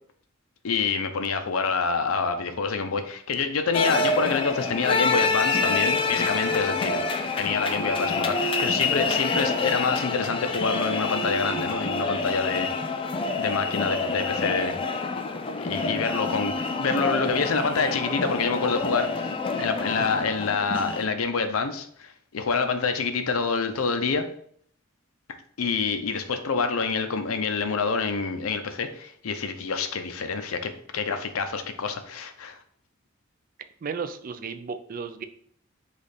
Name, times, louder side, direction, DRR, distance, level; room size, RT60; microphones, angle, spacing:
voice 1, 0.6-7.0 7.4-12.7 13.4-14.8 15.6-19.3 19.6-24.3 25.6-32.6, left 4 dB, 85° left, 8 dB, 0.6 m, -27 dB
sound 1, 3.7-21.0, left 3 dB, 25° left, 0.4 m, -27 dB
voice 2, 33.8-35.2, right 5 dB, 45° right, 10 dB, 0.4 m, -34 dB
5.0 x 2.4 x 4.1 m, 0.62 s
head